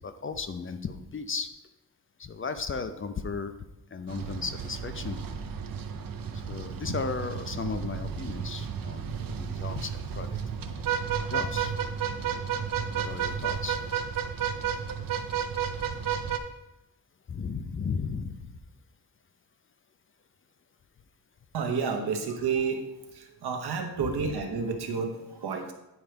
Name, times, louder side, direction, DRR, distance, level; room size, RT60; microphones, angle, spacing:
voice 1, 0.0-1.5 2.2-3.5 3.9-5.2 6.3-10.8 11.3-11.7 12.9-13.8 17.3-18.6 24.0-24.3, left 5 dB, 35° left, 9 dB, 0.5 m, -35 dB
sound 1, 4.1-16.4, right 8 dB, 60° right, 0.7 m, -32 dB
voice 2, 21.5-22.8 23.1-25.7, right 5 dB, 75° right, 5 dB, 1.2 m, -30 dB
9.4 x 4.5 x 5.1 m, 0.92 s
wide cardioid pair, 155°, 39 cm